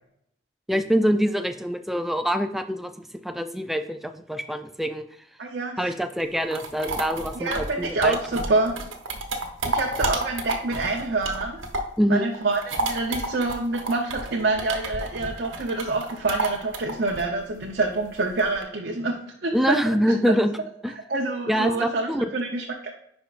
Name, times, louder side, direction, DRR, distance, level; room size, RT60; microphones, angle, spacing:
voice 1, 0.7-5.0 5.8-8.2 12.0-12.3 19.5-20.5 20.8-20.9 21.5-22.2, equal, ahead, 7 dB, 0.3 m, -25 dB
voice 2, 5.4-5.9 7.3-8.7 9.6-11.6 12.1-19.8 20.1-20.2 21.1-22.9, right 3 dB, 55° right, 0 dB, 0.7 m, -27 dB
sound 1, 6.2-12.0 12.3-18.6, right 2 dB, 85° right, 1.0 m, -31 dB
11.0 x 4.4 x 2.5 m, 0.75 s
head